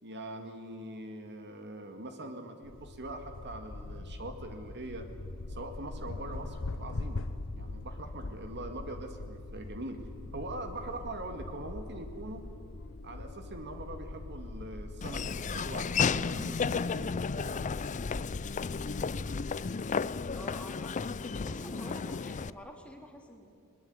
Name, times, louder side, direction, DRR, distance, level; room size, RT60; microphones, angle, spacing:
voice 1, 0.0-5.1 5.5-7.2 7.5-10.0 10.3-12.4 13.0-17.6, right 1 dB, 50° right, 6 dB, 2.1 m, -42 dB
sound 1, 2.6-19.7, left 2 dB, 60° left, 0.9 m, -42 dB
Laughter / Walk footsteps, 15.0-22.5, left 5 dB, 35° left, 0.5 m, -33 dB
voice 2, 20.3-23.5, equal, 5° left, 2 dB, 3.1 m, -48 dB
21.0 x 21.0 x 9.5 m, 2.5 s
head